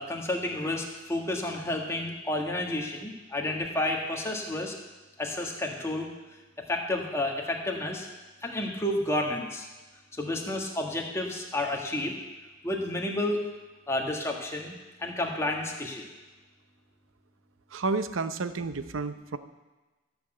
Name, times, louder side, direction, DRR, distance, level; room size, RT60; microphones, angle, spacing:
voice 1, 0.0-4.7 5.2-6.1 6.7-8.1 8.4-9.7 10.2-12.1 12.6-13.4 13.9-14.7 15.0-16.1, left 1 dB, 15° left, -1 dB, 1.6 m, -30 dB
voice 2, 17.7-19.4, right 3 dB, 75° right, 11 dB, 0.7 m, -31 dB
14.0 x 6.1 x 7.7 m, 1.2 s
head